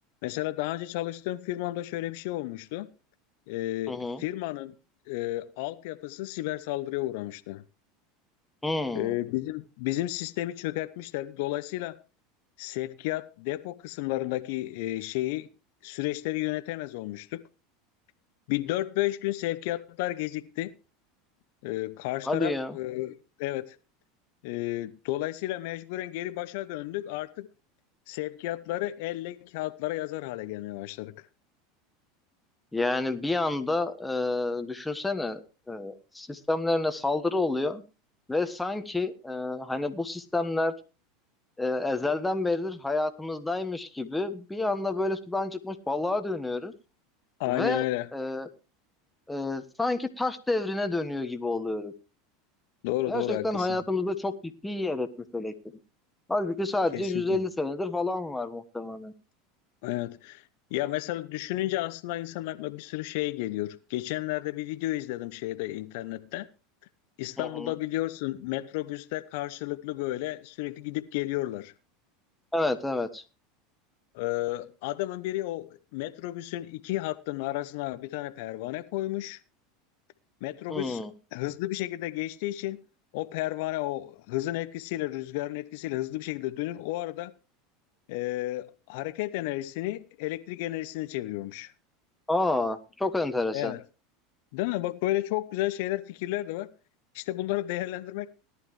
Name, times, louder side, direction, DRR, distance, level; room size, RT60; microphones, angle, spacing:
voice 1, 0.2-2.9 3.5-4.7 5.1-7.6 8.9-12.0 12.6-15.5 15.8-17.4 18.5-20.7 21.6-23.8 24.4-27.5 28.1-31.1 47.4-48.1 52.8-53.8 56.9-57.4 59.8-66.5 67.2-71.7 74.1-79.4 80.4-81.0 81.3-82.8 83.1-87.3 88.1-91.7 93.5-93.8 94.5-96.7 97.1-98.3, left 16 dB, 65° left, 0.7 m, -32 dB
voice 2, 3.9-4.2 8.6-9.2 22.2-22.8 32.7-37.8 38.3-40.7 41.6-46.7 47.5-47.8 48.1-48.5 49.3-51.9 53.1-55.1 55.3-55.5 56.3-59.1 67.4-67.7 72.5-73.2 80.7-81.1 92.3-93.7, left 2 dB, 10° left, 1.4 m, -29 dB
17.5 x 11.0 x 3.2 m
hypercardioid pair, 90°, 0 cm